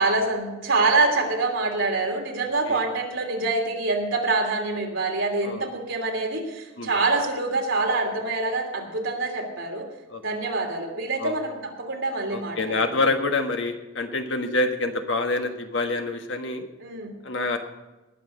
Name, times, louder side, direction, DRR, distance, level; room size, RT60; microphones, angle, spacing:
voice 1, 0.0-9.9 10.2-12.8 16.8-17.1, right 3 dB, 85° right, 1 dB, 2.9 m, -25 dB
voice 2, 12.3-16.6 17.2-17.6, left 3 dB, 70° left, 5 dB, 1.5 m, -26 dB
19.0 x 6.5 x 6.6 m, 1.1 s
head